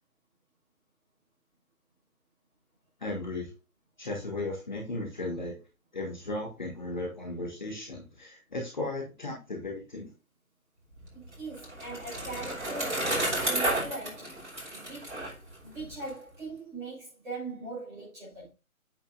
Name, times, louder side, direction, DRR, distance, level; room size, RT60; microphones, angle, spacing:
voice 1, 3.0-3.5 4.0-5.5 5.9-10.1, left 2 dB, 30° left, 1.6 m, -35 dB
Bicycle, 11.0-16.1, right 1 dB, 50° right, 5.3 m, -32 dB
voice 2, 11.1-15.4 15.6-18.5, right 3 dB, 5° right, 3.3 m, -41 dB
8.9 x 7.5 x 2.6 m
figure-of-eight pair, 155°, 43 cm